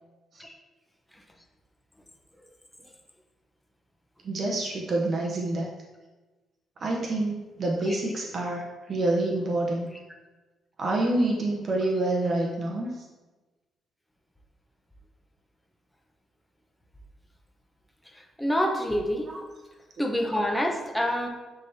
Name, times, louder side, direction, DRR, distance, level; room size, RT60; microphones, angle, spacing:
voice 1, 4.2-5.7 6.8-9.9 10.8-12.9 19.3-19.4, right 2 dB, 50° right, -1 dB, 0.8 m, -27 dB
voice 2, 18.4-19.3 20.0-21.3, equal, 5° left, 2 dB, 1.0 m, -26 dB
9.9 x 3.5 x 2.8 m, 1.2 s
cardioid pair, 90°, 0 cm